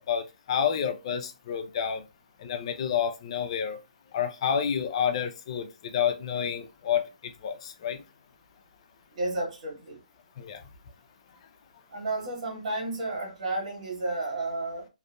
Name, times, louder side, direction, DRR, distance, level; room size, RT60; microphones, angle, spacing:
voice 1, 0.1-2.0 2.4-3.8 4.1-8.0 10.4-10.6, left 8 dB, 45° left, 0.4 m, -29 dB
voice 2, 9.1-10.0 11.9-14.9, right 2 dB, 60° right, 1.5 m, -32 dB
2.6 x 2.3 x 2.4 m
hypercardioid pair, 145°, 4 cm